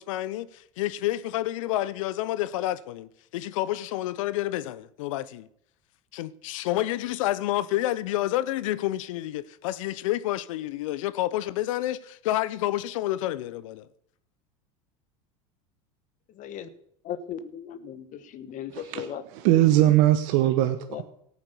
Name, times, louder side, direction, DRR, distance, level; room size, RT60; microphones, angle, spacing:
voice 1, 0.0-5.5 6.1-13.9, left 14 dB, 75° left, 0.7 m, -29 dB
voice 2, 16.4-16.7 17.0-18.0 18.3-19.2 20.9-21.0, left 9 dB, 50° left, 1.3 m, -36 dB
voice 3, 18.9-21.0, right 14 dB, 65° right, 1.0 m, -21 dB
14.5 x 8.6 x 6.9 m
hypercardioid pair, 90°, 17 cm